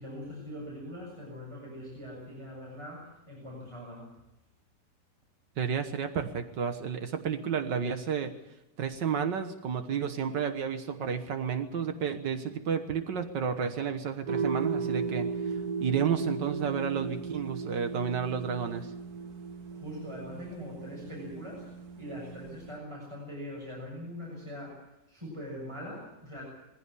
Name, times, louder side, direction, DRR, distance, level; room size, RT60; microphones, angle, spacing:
voice 1, 0.0-4.1 19.7-21.7 22.0-26.4, equal, 15° right, -3 dB, 7.1 m, -42 dB
voice 2, 5.6-8.3 8.8-18.9, right 7 dB, 80° right, 7 dB, 2.0 m, -31 dB
sound 1, 14.3-22.8, right 5 dB, 60° right, 1.9 m, -36 dB
22.5 x 16.0 x 9.8 m, 0.91 s
omnidirectional pair, 1.9 m